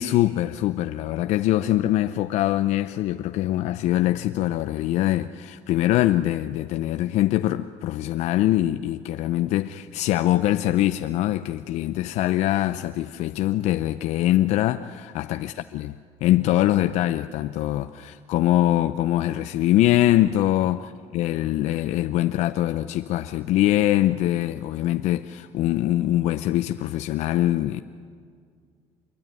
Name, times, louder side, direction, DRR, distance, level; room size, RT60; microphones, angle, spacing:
voice 1, 0.0-15.9 16.2-27.8, left 14 dB, 70° left, 0.7 m, -23 dB
25.5 x 22.0 x 9.3 m
cardioid pair, 115°, 12 cm